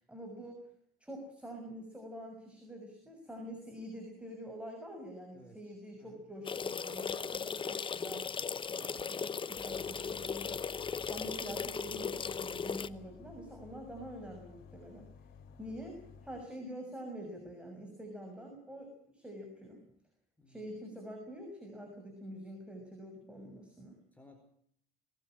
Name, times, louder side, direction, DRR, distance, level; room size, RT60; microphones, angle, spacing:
voice 1, 0.1-0.6 1.0-15.1 15.6-19.8 20.5-24.0, equal, 5° right, 3 dB, 6.3 m, -46 dB
voice 2, 5.3-5.7 6.0-6.2 15.4-15.7 20.4-20.7 24.1-24.4, equal, 10° left, 4 dB, 4.6 m, -59 dB
sound 1, 6.4-12.9, left 6 dB, 30° left, 0.9 m, -37 dB
sound 2, 9.5-16.4, left 5 dB, 75° left, 2.7 m, -55 dB
21.5 x 20.0 x 7.7 m, 0.66 s
cardioid pair, 110°, 17 cm